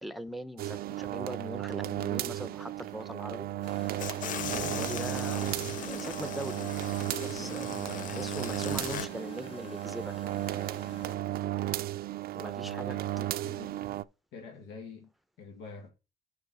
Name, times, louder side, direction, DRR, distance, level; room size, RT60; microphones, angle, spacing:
voice 1, 0.0-3.5 4.6-5.5 5.8-6.7 7.1-10.4 12.3-13.2, equal, ahead, 0.7 m, -41 dB
sound 1, 0.6-14.0, right 14 dB, 55° right, 0.4 m, -34 dB
sound 2, 3.6-11.2, left 3 dB, 30° left, 2.3 m, -49 dB
sound 3, 4.0-9.1, left 10 dB, 45° left, 0.4 m, -39 dB
voice 2, 12.6-13.8 14.3-15.1 15.4-15.9, left 4 dB, 80° left, 1.8 m, -47 dB
6.7 x 4.8 x 6.2 m
cardioid pair, 105°, 18 cm